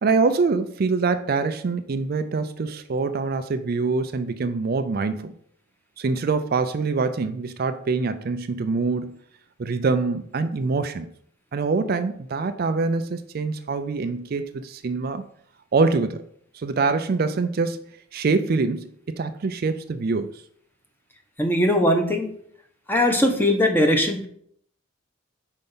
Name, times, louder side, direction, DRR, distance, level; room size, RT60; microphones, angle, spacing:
voice 1, 0.0-5.4 6.0-9.2 9.6-11.1 11.5-15.2 15.7-16.2 16.5-17.8 18.1-20.4, right 4 dB, 45° right, 9 dB, 0.4 m, -24 dB
voice 2, 21.4-22.3 22.9-24.3, left 1 dB, 10° left, 3 dB, 0.8 m, -20 dB
5.3 x 4.5 x 5.4 m, 0.64 s
head